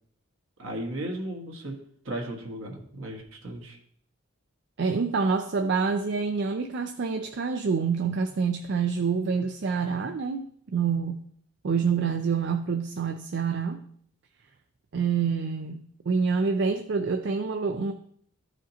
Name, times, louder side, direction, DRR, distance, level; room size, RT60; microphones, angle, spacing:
voice 1, 0.6-1.7 2.0-3.8, right 1 dB, 70° right, 1 dB, 1.5 m, -35 dB
voice 2, 4.8-11.2 11.6-13.8 14.9-17.9, right 5 dB, 55° right, 6 dB, 0.4 m, -27 dB
13.0 x 5.0 x 2.8 m, 0.64 s
head